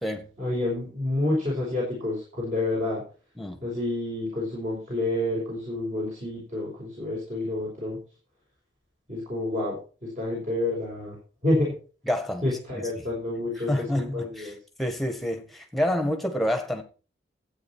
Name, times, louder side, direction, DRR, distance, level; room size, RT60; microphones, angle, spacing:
voice 1, 0.4-3.0 3.6-8.0 9.1-11.2 11.4-11.7 12.4-14.6, left 1 dB, 40° right, 5.2 m, -29 dB
voice 2, 12.1-12.4 12.8-12.9 13.7-14.5 14.8-16.8, left 1 dB, ahead, 1.6 m, -28 dB
13.0 x 8.9 x 4.6 m
head